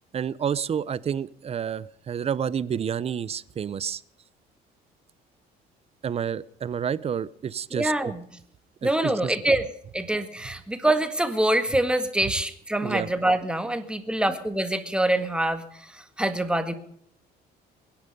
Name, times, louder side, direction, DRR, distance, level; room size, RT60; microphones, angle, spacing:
voice 1, 0.1-4.0 6.0-8.1 8.8-9.6 12.8-13.1, right 8 dB, 35° right, 19 dB, 0.7 m, -29 dB
voice 2, 7.7-8.2 8.8-9.7 9.9-16.7, right 1 dB, 5° right, 9 dB, 1.8 m, -25 dB
22.5 x 10.5 x 5.3 m, 0.68 s
cardioid pair, 110°, 17 cm